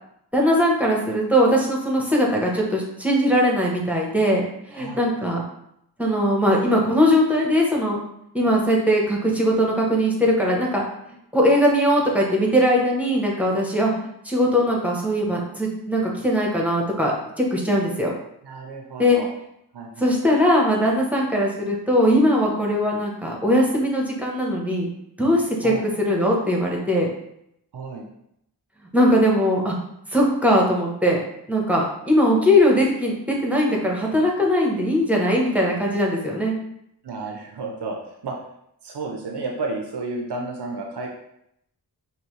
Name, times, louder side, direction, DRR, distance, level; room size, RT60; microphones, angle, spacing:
voice 1, 0.3-5.4 6.0-8.0 8.3-13.9 14.2-18.1 19.0-19.2 20.0-24.9 25.2-27.1 28.9-29.7 30.1-31.2 31.5-36.5, equal, 5° right, -2 dB, 1.0 m, -20 dB
voice 2, 4.7-5.0 18.4-19.3 19.7-20.2 25.6-25.9 27.7-28.1 37.0-38.4 38.8-41.1, right 3 dB, 80° right, 1 dB, 0.6 m, -32 dB
5.4 x 2.2 x 3.1 m, 0.77 s
wide cardioid pair, 55°, 40 cm